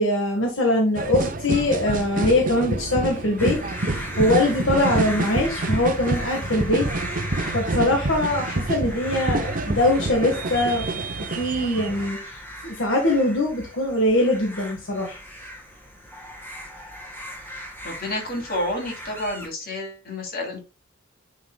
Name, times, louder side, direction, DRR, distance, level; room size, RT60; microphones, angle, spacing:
voice 1, 0.0-3.6 4.2-6.8 7.5-11.0 11.4-12.2 12.6-15.2, left 1 dB, 75° left, 0 dB, 1.6 m, -22 dB
sound 1, 0.9-12.1, right 2 dB, 45° right, 0.8 m, -27 dB
sound 2, 3.4-19.5, equal, 10° left, 2.2 m, -38 dB
voice 2, 17.8-20.6, left 1 dB, 50° left, 1 dB, 3.0 m, -29 dB
9.4 x 5.5 x 2.3 m, 0.29 s
head